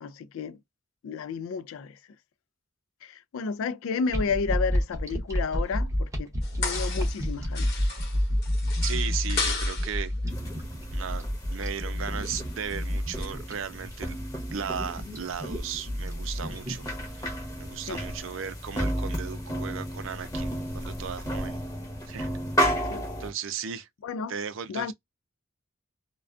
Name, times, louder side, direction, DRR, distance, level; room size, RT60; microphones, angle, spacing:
voice 1, 0.0-0.6 1.0-2.0 3.0-6.3 6.6-7.7 17.9-18.0 22.9-23.1 24.0-24.3 24.7-24.9, left 5 dB, 85° left, 0.3 m, -32 dB
sound 1, 4.1-17.2, equal, 15° right, 0.6 m, -30 dB
sound 2, 6.4-7.3 7.5-10.0 12.2-12.7 13.2-13.3, left 4 dB, 55° left, 0.9 m, -34 dB
voice 2, 8.8-10.1 10.9-14.2 14.5-16.9 17.6-21.6 22.1-22.3 23.2-23.9 24.3-24.9, right 7 dB, 70° right, 0.5 m, -36 dB
sound 3, 10.3-23.3, equal, 15° left, 0.8 m, -33 dB
2.4 x 2.2 x 2.3 m
head